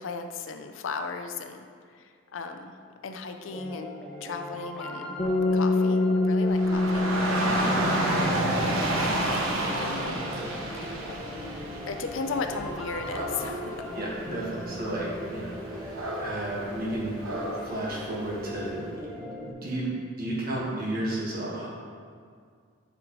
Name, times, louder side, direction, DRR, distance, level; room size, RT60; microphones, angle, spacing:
voice 1, 0.0-1.6 2.3-2.7 3.0-3.9 4.2-5.2 5.5-7.1 8.5-8.8 9.8-10.2 10.7-11.2 11.8-13.8, left 4 dB, 75° left, 6 dB, 0.5 m, -35 dB
sound 1, 3.5-19.5, equal, 5° left, 0.5 m, -40 dB
sound 2, 5.2-9.4, left 2 dB, 35° left, 0.9 m, -26 dB
Dog / Rain, 6.5-18.6, right 1 dB, 85° right, 1.1 m, -31 dB
voice 2, 13.9-17.2 17.6-18.9 19.1-19.9 20.2-21.7, right 1 dB, 45° right, -4 dB, 1.5 m, -33 dB
9.5 x 5.0 x 3.1 m, 2.1 s
head